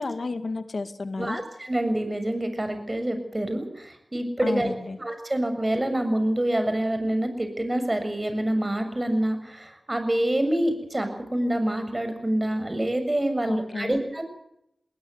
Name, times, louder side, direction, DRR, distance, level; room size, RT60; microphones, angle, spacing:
voice 1, 0.0-1.4 4.4-5.0 13.5-14.0, left 3 dB, 70° left, 9 dB, 2.2 m, -31 dB
voice 2, 1.2-4.7 5.0-14.2, right 1 dB, 30° right, 8 dB, 7.2 m, -26 dB
20.5 x 20.0 x 8.1 m, 0.79 s
cardioid pair, 45°, 0 cm